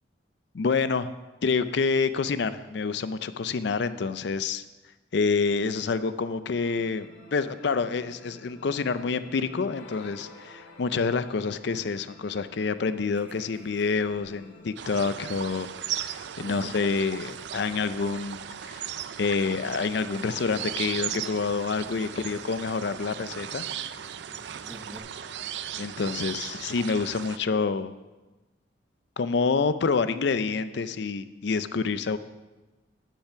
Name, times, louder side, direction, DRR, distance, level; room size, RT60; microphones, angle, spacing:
voice 1, 0.5-1.1 1.4-4.6 5.1-18.8 19.2-23.7 25.8-27.9 29.2-32.2, left 4 dB, 60° left, 13 dB, 0.4 m, -27 dB
sound 1, 6.4-15.6, left 1 dB, 75° left, 2.0 m, -51 dB
sound 2, 13.1-14.7 15.1-15.2 15.5-25.0, equal, 10° right, 0.8 m, -55 dB
sound 3, 14.8-27.4, right 9 dB, 60° right, 0.4 m, -37 dB
10.5 x 5.7 x 5.7 m, 1.1 s
head